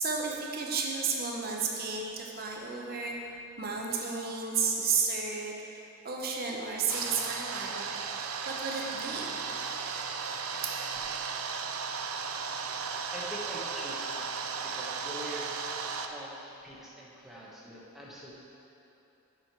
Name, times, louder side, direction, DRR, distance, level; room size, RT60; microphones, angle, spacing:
voice 1, 0.0-3.2 3.6-10.0, right 5 dB, 45° right, -1 dB, 0.9 m, -33 dB
sound 1, 6.9-16.1, right 5 dB, 80° right, 0.5 m, -35 dB
voice 2, 10.9-11.4 12.6-15.7 16.1-18.3, equal, ahead, -6 dB, 1.0 m, -45 dB
7.3 x 6.3 x 4.6 m, 3.0 s
head